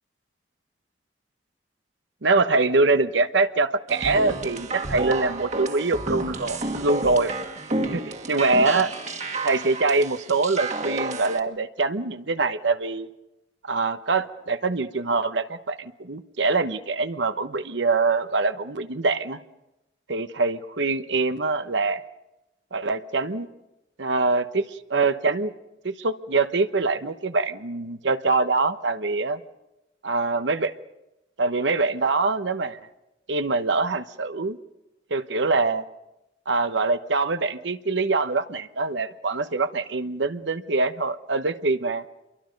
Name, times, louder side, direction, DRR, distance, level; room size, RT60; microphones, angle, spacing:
voice 1, 2.2-7.4 7.9-8.9 9.4-13.1 13.6-19.4 20.1-22.0 22.7-23.5 24.0-25.5 25.8-29.4 30.0-30.7 31.4-32.8 33.3-34.6 35.1-35.8 36.5-42.0, right 3 dB, 75° right, 10 dB, 1.0 m, -24 dB
sound 1, 3.9-11.4, right 2 dB, 35° right, 1.7 m, -31 dB
28.0 x 23.5 x 5.3 m, 0.93 s
head